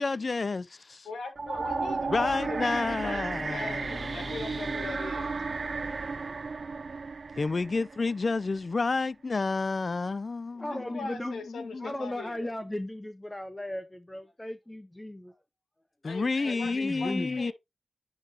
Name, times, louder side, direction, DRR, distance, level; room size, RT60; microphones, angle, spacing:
voice 1, 0.0-1.1 2.1-4.4 7.4-11.9 16.0-17.5, left 3 dB, 50° left, 0.5 m, -30 dB
voice 2, 1.0-5.3 10.7-12.5 16.0-17.5, left 4 dB, 85° left, 1.8 m, -41 dB
sound 1, 1.4-8.5, right 4 dB, 60° right, 0.6 m, -34 dB
voice 3, 10.6-11.4 11.8-15.4 16.4-17.4, left 1 dB, 15° left, 0.8 m, -37 dB
10.5 x 4.0 x 2.7 m
cardioid pair, 45°, 0 cm